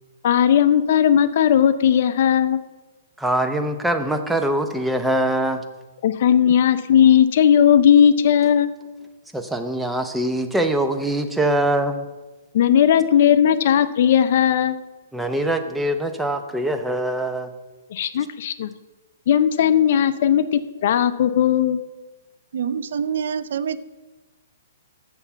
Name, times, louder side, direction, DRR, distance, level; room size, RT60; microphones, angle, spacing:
voice 1, 0.2-2.6 6.0-8.7 12.5-14.8 17.9-18.7 19.3-21.8, left 9 dB, 55° left, 13 dB, 0.6 m, -17 dB
voice 2, 3.2-5.6 9.3-12.1 15.1-17.5, right 1 dB, 5° right, 6 dB, 0.7 m, -23 dB
voice 3, 22.5-23.8, right 7 dB, 70° right, 15 dB, 0.5 m, -26 dB
7.0 x 6.9 x 6.8 m, 1.2 s
hypercardioid pair, 150°, 0 cm